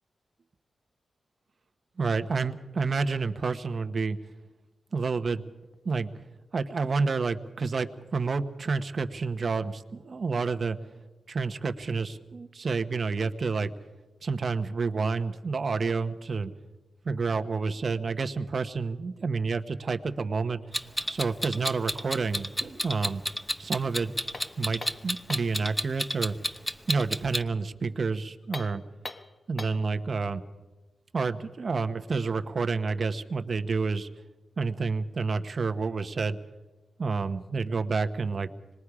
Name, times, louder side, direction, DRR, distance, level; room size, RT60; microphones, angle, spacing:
voice 1, 2.0-4.2 4.9-5.4 5.8-6.1 6.5-10.8 11.3-13.7 14.2-16.5 17.0-20.6 21.1-23.2 23.6-24.1 24.6-26.3 26.9-28.8 29.5-30.4 31.1-34.1 34.6-36.4 37.0-38.5, right 4 dB, 50° right, 9 dB, 1.1 m, -29 dB
Clock, 20.7-27.4, equal, 5° left, 0.8 m, -31 dB
sound 1, 24.3-25.6 28.4-29.9, left 2 dB, 35° left, 1.1 m, -41 dB
25.5 x 21.0 x 4.9 m, 1.2 s
wide cardioid pair, 95°, 0 cm